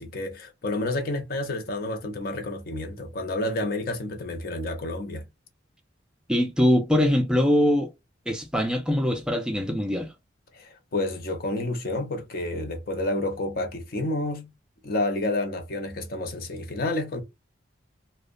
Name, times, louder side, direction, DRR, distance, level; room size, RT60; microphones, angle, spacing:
voice 1, 0.0-5.2 10.5-14.5 14.8-17.2, left 2 dB, 50° left, 0.6 m, -30 dB
voice 2, 6.3-7.9 8.3-10.1, equal, 5° right, 0.3 m, -22 dB
2.7 x 2.1 x 2.4 m
head